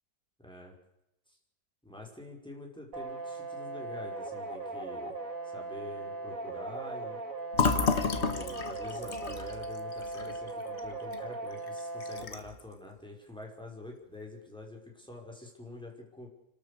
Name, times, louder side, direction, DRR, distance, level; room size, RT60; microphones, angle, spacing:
voice 1, 0.4-0.7 1.3-1.4 1.8-5.1 5.4-7.2 8.0-16.3, left 2 dB, 5° left, 0 dB, 5.1 m, -46 dB
sound 1, 2.9-12.2, right 2 dB, 55° right, 2.6 m, -39 dB
Fill (with liquid), 7.5-11.2 11.5-11.7 12.0-12.6, left 5 dB, 45° left, 1.7 m, -31 dB
30.0 x 13.0 x 6.7 m, 0.86 s
omnidirectional pair, 1.7 m